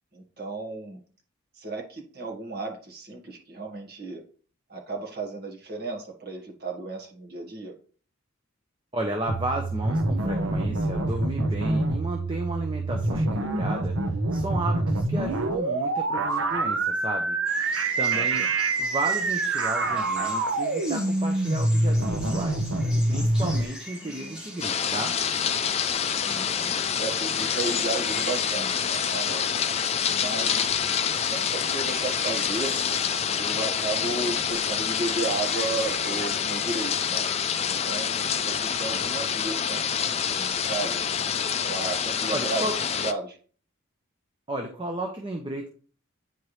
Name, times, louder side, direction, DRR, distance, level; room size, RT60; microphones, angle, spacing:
voice 1, 0.1-1.0 1.5-4.2 4.7-7.7 18.1-18.3 24.0-24.4 26.2-29.5 30.1-30.7 31.0-32.7 33.4-37.3 37.7-41.0 41.6-42.6 43.0-43.4, right 3 dB, 45° right, 1 dB, 1.7 m, -34 dB
voice 2, 8.9-14.0 14.3-17.4 18.0-18.5 18.8-22.7 23.1-25.2 42.3-42.7 44.5-45.7, right 1 dB, 25° right, 2 dB, 0.8 m, -33 dB
sound 1, 9.3-23.6, right 2 dB, 70° right, 0.8 m, -26 dB
sound 2, 17.4-37.1, left 1 dB, 5° right, 2.2 m, -42 dB
sound 3, 24.6-43.1, left 7 dB, 30° left, 0.4 m, -27 dB
9.4 x 4.5 x 3.3 m, 0.42 s
head